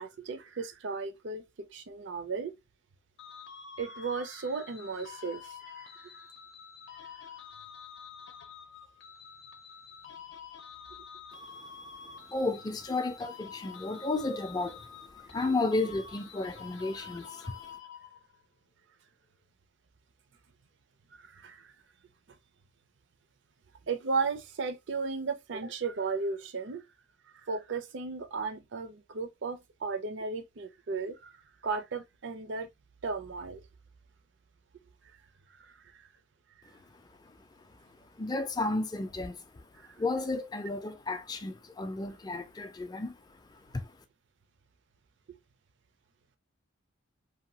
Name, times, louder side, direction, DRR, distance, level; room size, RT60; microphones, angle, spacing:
voice 1, 0.0-1.4 1.7-2.5 3.8-5.9 21.2-21.7 23.9-26.8 27.5-31.3 31.6-32.7 33.0-33.6 39.9-40.0 45.3-45.4, right 4 dB, 65° right, 0.5 m, -35 dB
sound 1, 3.2-18.4, left 6 dB, 70° left, 0.6 m, -48 dB
voice 2, 12.3-17.5 38.2-39.6 40.0-43.2 43.5-43.9, left 2 dB, 20° left, 0.4 m, -33 dB
2.8 x 2.2 x 2.6 m
head